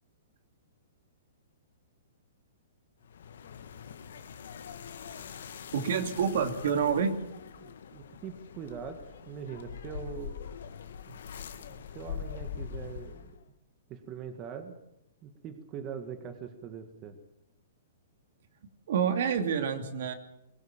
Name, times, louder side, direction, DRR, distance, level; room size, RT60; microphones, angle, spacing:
sound 1, 3.0-13.4, left 7 dB, 75° left, 1.9 m, -43 dB
voice 1, 5.7-7.1 18.9-20.1, right 7 dB, 65° right, 6 dB, 2.7 m, -28 dB
voice 2, 7.6-10.3 11.1-11.2 11.5-13.4 13.9-14.7 15.2-17.2, right 7 dB, 25° right, 7 dB, 1.8 m, -42 dB
22.5 x 17.5 x 7.3 m, 0.84 s
hypercardioid pair, 150°, 0 cm